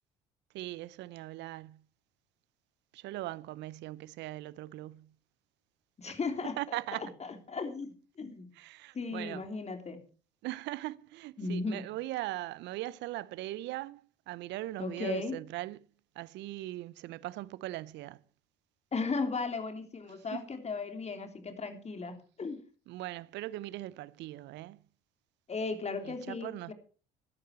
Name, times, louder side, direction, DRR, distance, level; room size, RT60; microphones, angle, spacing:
voice 1, 0.5-1.8 2.9-5.1 6.1-6.2 6.6-7.0 8.6-9.4 10.4-15.8 16.2-18.2 20.3-20.4 22.9-24.8 26.0-26.7, right 16 dB, 60° right, 0.7 m, -40 dB
voice 2, 6.0-8.5 8.9-10.0 11.4-11.9 14.8-15.4 18.9-22.6 25.5-26.7, left 4 dB, 35° left, 3.5 m, -36 dB
15.0 x 11.5 x 4.6 m
hypercardioid pair, 60°, 20 cm